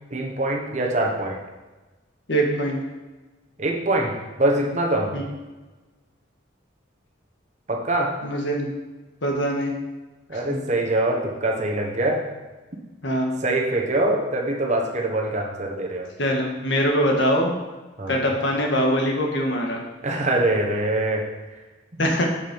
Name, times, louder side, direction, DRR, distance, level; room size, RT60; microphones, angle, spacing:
voice 1, 0.1-1.4 3.6-5.1 7.7-8.1 10.3-12.2 13.4-16.1 18.0-18.4 20.0-21.3 22.0-22.1, right 1 dB, 35° right, 1 dB, 1.3 m, -24 dB
voice 2, 2.3-2.8 5.1-5.2 8.2-8.7 9.2-9.7 10.3-10.4 13.0-13.3 16.2-17.5 18.1-19.8 22.0-22.2, equal, 65° left, 1 dB, 1.7 m, -22 dB
7.6 x 7.5 x 5.4 m, 1.2 s
head